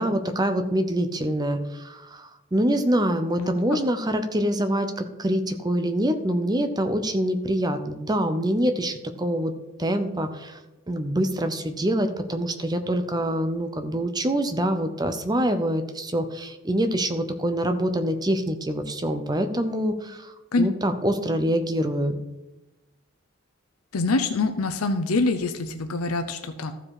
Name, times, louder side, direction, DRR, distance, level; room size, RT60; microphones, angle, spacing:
voice 1, 0.0-9.5 9.8-10.6 10.9-22.2, right 1 dB, 20° right, 8 dB, 0.7 m, -25 dB
voice 2, 3.4-3.8 20.5-20.6 23.9-26.7, left 3 dB, 80° left, 7 dB, 0.7 m, -25 dB
14.0 x 5.0 x 4.8 m, 1.0 s
head